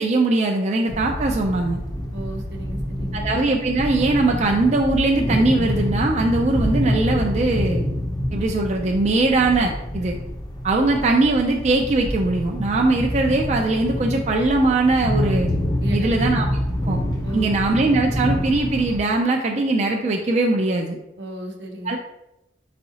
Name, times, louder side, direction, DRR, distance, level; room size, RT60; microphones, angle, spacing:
voice 1, 0.0-1.8 3.1-7.8 8.3-10.2 10.6-15.5 15.9-16.6 16.9-17.0 17.3-21.0 21.8-22.0, right 2 dB, 40° right, 1 dB, 0.4 m, -20 dB
sound 1, 0.9-19.0, equal, 25° left, 0.6 m, -26 dB
voice 2, 2.1-3.3 15.8-16.2 17.2-17.5 21.2-21.9, right 1 dB, 85° right, 2 dB, 0.8 m, -34 dB
4.6 x 4.1 x 2.8 m, 0.86 s
head